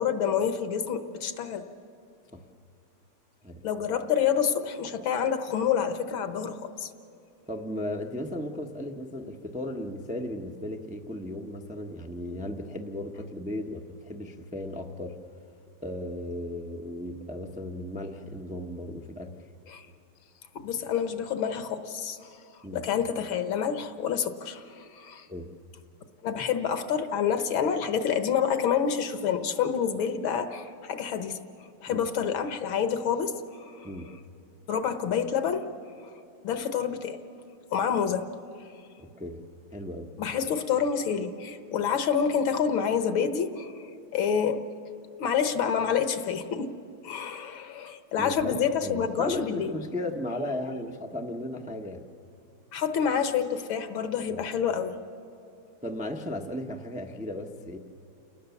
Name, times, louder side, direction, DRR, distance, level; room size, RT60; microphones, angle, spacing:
voice 1, 0.0-1.6 3.6-6.9 19.7-19.8 20.6-22.3 22.7-25.3 26.2-31.4 31.8-33.3 33.8-33.9 34.7-35.7 36.4-37.2 37.7-38.3 40.2-43.7 44.1-44.6 45.2-46.7 47.0-49.8 52.7-55.0, left 7 dB, 70° left, 9 dB, 1.8 m, -28 dB
voice 2, 7.5-15.1 15.8-19.3 22.6-22.8 25.3-25.5 31.9-32.0 33.8-34.1 39.2-39.4 39.7-40.1 48.2-52.0 54.3-54.4 55.8-57.8, left 1 dB, 10° right, 2 dB, 0.4 m, -35 dB
28.5 x 20.0 x 7.1 m, 2.7 s
omnidirectional pair, 2.4 m